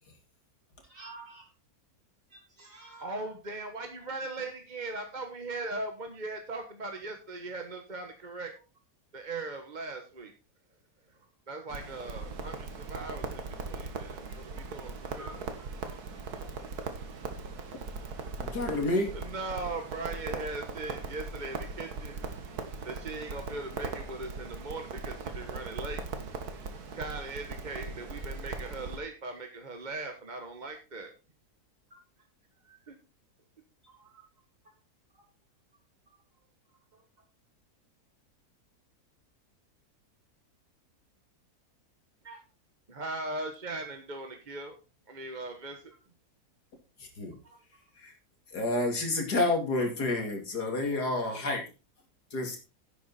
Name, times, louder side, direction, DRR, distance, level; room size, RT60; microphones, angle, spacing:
voice 1, 0.8-1.5 2.3-3.3 14.5-14.6 15.1-16.0 31.9-32.0 33.8-34.2 35.1-35.2 36.9-37.0 42.2-42.4 47.4-47.6, right 2 dB, 55° right, 0 dB, 3.3 m, -51 dB
voice 2, 3.0-8.5 9.1-10.3 11.5-15.5 19.1-22.2 22.8-26.3 26.9-31.1 32.6-33.0 42.9-44.7 45.1-45.9, right 2 dB, 30° right, 5 dB, 1.3 m, -39 dB
Crackle, 11.7-29.0, right 4 dB, 75° right, 2.0 m, -39 dB
voice 3, 18.4-19.1 47.2-47.3 48.0-48.1 48.5-51.6 52.3-52.6, left 2 dB, 90° left, 3 dB, 3.2 m, -29 dB
10.5 x 8.6 x 4.2 m, 0.32 s
omnidirectional pair, 1.7 m